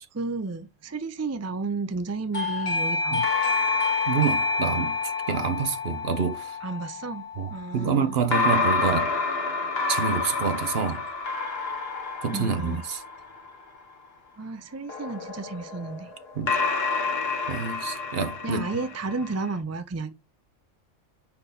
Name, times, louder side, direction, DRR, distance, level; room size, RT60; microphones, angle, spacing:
voice 1, 0.1-3.3 6.6-8.1 12.3-12.8 14.4-16.1 18.4-20.1, right 3 dB, 25° right, 0.4 m, -32 dB
Doorbell, 2.3-8.8, left 4 dB, 30° left, 0.9 m, -29 dB
sound 1, 2.4-5.8 8.3-13.8 14.9-19.5, left 4 dB, 55° left, 1.4 m, -29 dB
voice 2, 4.1-6.6 7.4-9.1 9.9-11.0 12.2-13.0 16.4-16.6 17.5-18.7, right 6 dB, 55° right, 1.0 m, -27 dB
5.2 x 4.5 x 4.0 m
omnidirectional pair, 1.3 m